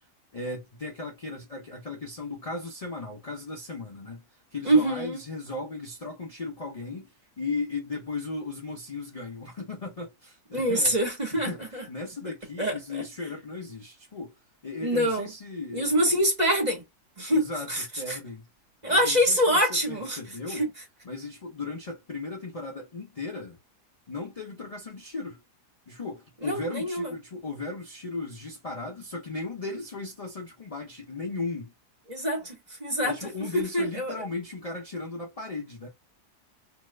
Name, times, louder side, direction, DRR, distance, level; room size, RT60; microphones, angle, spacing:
voice 1, 0.3-4.2 4.5-10.9 11.3-11.6 11.9-14.3 14.6-16.2 17.3-18.5 18.9-20.7 21.0-23.6 24.1-25.4 25.9-31.7 33.0-35.9, left 3 dB, 50° left, 0.4 m, -36 dB
voice 2, 4.6-5.2 10.5-11.8 12.6-12.8 14.8-15.3 15.7-16.8 17.2-17.4 17.7-18.2 18.8-20.2 20.5-20.7 26.4-27.1 32.1-33.3 33.7-34.1, equal, 25° right, 1.4 m, -25 dB
2.8 x 2.3 x 3.1 m
omnidirectional pair, 1.7 m